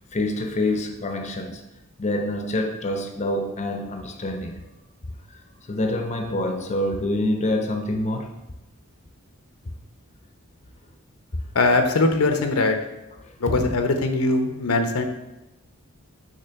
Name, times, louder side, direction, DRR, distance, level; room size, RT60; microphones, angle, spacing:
voice 1, 0.1-1.6 2.0-4.6 5.3-5.4 5.7-8.4 13.2-13.3, left 1 dB, 30° left, 4 dB, 0.6 m, -26 dB
voice 2, 11.5-12.8 13.4-15.0, left 2 dB, 80° left, 6 dB, 0.8 m, -21 dB
6.7 x 3.2 x 5.7 m, 0.96 s
head